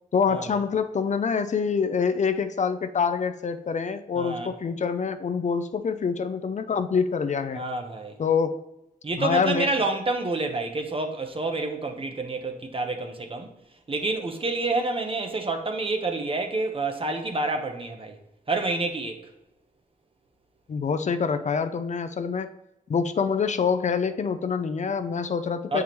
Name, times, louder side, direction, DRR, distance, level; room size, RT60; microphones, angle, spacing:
voice 1, 0.1-7.6 8.2-8.6 9.2-9.7 20.7-22.6 22.9-25.8, left 6 dB, 50° left, 0.5 m, -26 dB
voice 2, 4.1-4.5 7.5-8.2 9.0-13.5 13.9-18.2 18.5-19.2 25.7-25.8, right 3 dB, 35° right, 0.9 m, -28 dB
6.8 x 4.8 x 3.0 m
wide cardioid pair, 90°, 15 cm